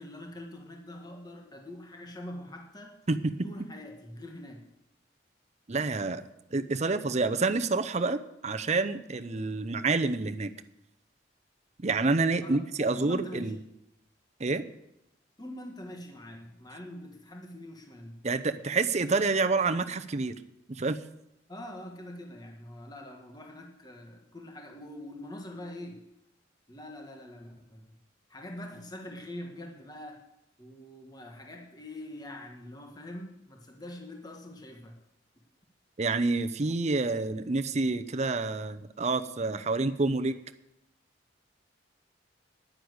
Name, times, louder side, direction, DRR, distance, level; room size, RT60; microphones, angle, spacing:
voice 1, 0.0-2.9 3.4-4.7 12.4-13.5 15.4-18.2 21.5-26.0 26.7-27.9 28.3-30.2 30.6-35.0, left 1 dB, 20° left, 2 dB, 1.5 m, -44 dB
voice 2, 3.1-3.5 5.7-6.2 6.5-10.5 11.8-13.6 14.4-14.6 18.2-20.3 20.7-21.0 36.0-40.3, right 3 dB, 35° right, 9 dB, 0.7 m, -28 dB
10.5 x 9.9 x 8.0 m, 0.85 s
head